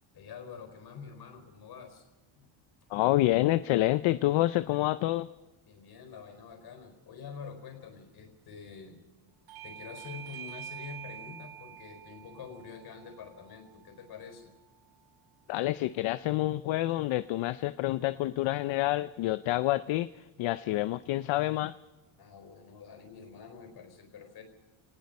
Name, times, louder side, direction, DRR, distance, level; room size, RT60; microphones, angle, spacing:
voice 1, 0.1-2.1 2.4-2.5 5.6-9.0 9.6-14.5 22.2-24.4, left 6 dB, 50° left, 5 dB, 4.7 m, -46 dB
voice 2, 2.9-5.3 15.5-20.1 20.4-21.7, left 16 dB, 70° left, 14 dB, 0.6 m, -28 dB
Bell / Doorbell, 9.5-14.7, right 9 dB, 50° right, 1.1 m, -47 dB
29.5 x 19.5 x 5.4 m, 1.1 s
cardioid pair, 160°, 49 cm